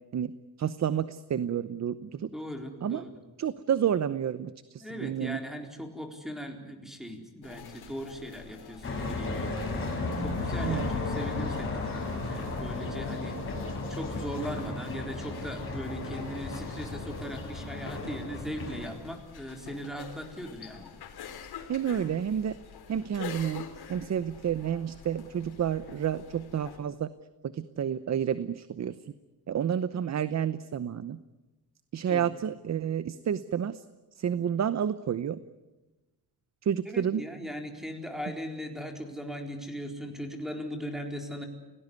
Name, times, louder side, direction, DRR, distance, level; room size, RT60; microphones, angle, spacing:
voice 1, 0.6-2.3 2.8-3.0 3.4-5.4 10.6-10.9 21.7-22.6 22.9-27.1 27.5-29.0 29.5-31.2 31.9-33.8 34.2-35.4 36.6-37.2, right 9 dB, 45° right, 14 dB, 0.8 m, -30 dB
voice 2, 2.3-3.1 4.8-9.8 10.2-13.6 13.9-20.9 32.1-32.3 36.9-41.4, equal, ahead, 3 dB, 4.2 m, -39 dB
sound 1, 7.4-26.8, left 7 dB, 75° left, 3.9 m, -48 dB
sound 2, 8.8-18.9, left 3 dB, 35° left, 7.2 m, -34 dB
29.0 x 18.0 x 9.7 m, 1.1 s
cardioid pair, 130°, 38 cm